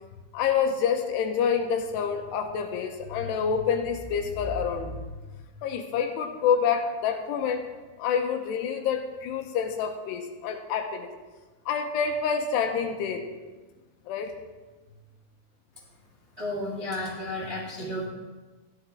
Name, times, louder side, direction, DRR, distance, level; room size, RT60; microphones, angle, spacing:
voice 1, 0.3-5.0 5.6-7.6 8.0-11.1 11.7-13.3 14.1-14.3, left 6 dB, 80° left, 5 dB, 2.9 m, -27 dB
voice 2, 16.4-18.1, left 1 dB, 40° right, -3 dB, 0.9 m, -32 dB
14.5 x 11.5 x 3.4 m, 1.3 s
omnidirectional pair, 5.0 m